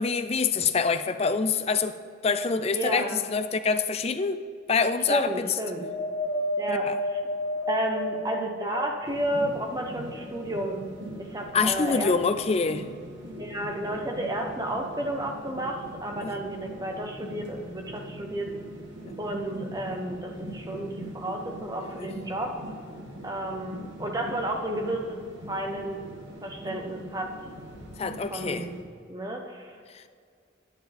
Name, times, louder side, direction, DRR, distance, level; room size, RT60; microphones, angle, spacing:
voice 1, 0.0-2.0 2.2-4.4 4.7-5.5 6.7-7.0 11.5-12.8 16.2-16.3 19.1-19.2 22.0-22.1 28.0-28.7 29.9-30.0, left 5 dB, 30° left, 11 dB, 0.4 m, -26 dB
voice 2, 2.7-3.2 5.1-5.9 6.6-7.2 7.7-10.9 11.2-12.1 13.4-18.5 19.2-22.7 23.2-25.2 25.5-26.0 26.4-27.4 28.3-28.7 29.1-29.8, right 1 dB, 20° right, 2 dB, 0.9 m, -32 dB
Wind, 5.7-9.3 9.9-10.9 11.7-11.8, left 1 dB, 50° left, 1.2 m, -32 dB
sound 1, 9.0-28.8, equal, 65° right, 1.9 m, -42 dB
10.0 x 9.2 x 3.5 m, 2.2 s
head